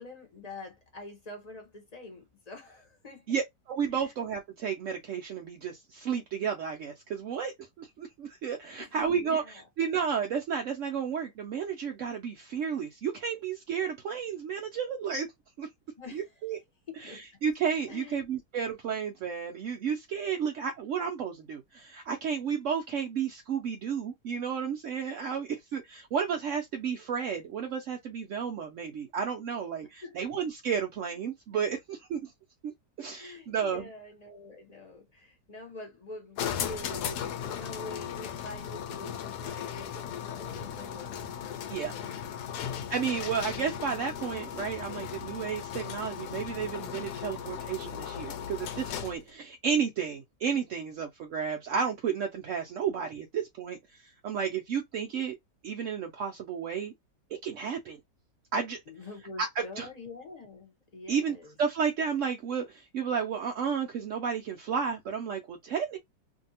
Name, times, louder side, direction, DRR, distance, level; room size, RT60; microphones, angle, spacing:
voice 1, 0.0-3.3 3.9-4.0 8.8-9.6 16.0-16.3 17.0-17.2 17.9-18.2 30.0-30.2 33.2-42.2 42.5-42.8 43.1-43.2 43.5-43.9 58.9-61.5, left 2 dB, 30° left, 0.7 m, -46 dB
voice 2, 3.3-15.3 15.6-15.7 16.1-16.6 16.9-32.3 32.6-32.7 33.0-33.9 41.7-41.9 42.9-55.4 55.6-56.9 57.4-58.0 58.5-58.8 59.4-59.9 61.1-66.0, right 7 dB, 70° right, 0.7 m, -32 dB
sound 1, 36.4-49.3, left 9 dB, 75° left, 1.1 m, -37 dB
2.7 x 2.6 x 2.7 m
omnidirectional pair, 1.9 m